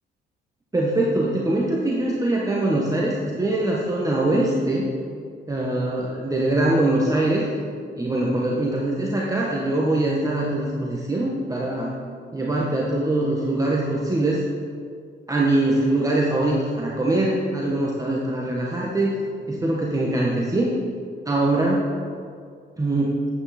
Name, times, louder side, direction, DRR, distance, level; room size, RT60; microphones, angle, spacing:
voice 1, 0.7-4.9 5.5-7.5 8.0-11.9 12.3-14.4 15.3-19.2 19.5-20.7 21.2-21.9 22.8-23.2, right 2 dB, 15° right, -4 dB, 1.3 m, -23 dB
9.4 x 8.5 x 4.3 m, 2.2 s
cardioid pair, 90°, 20 cm